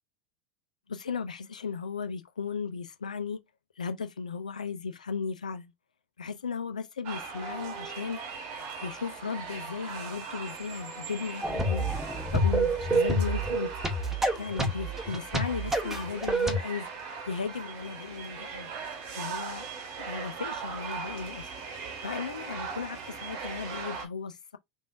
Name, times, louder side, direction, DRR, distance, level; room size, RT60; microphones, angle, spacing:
voice 1, 0.9-3.4 3.8-5.7 6.2-8.2 8.8-11.9 12.3-13.7 14.4-16.9 17.3-18.7 19.2-19.7 20.0-21.5 22.0-24.6, left 5 dB, 80° left, 0.4 m, -36 dB
sound 1, 7.0-24.0, right 5 dB, 50° right, 1.0 m, -40 dB
sound 2, 11.4-16.6, right 1 dB, 10° right, 0.8 m, -28 dB
3.4 x 2.5 x 2.4 m
figure-of-eight pair, 80°, 4 cm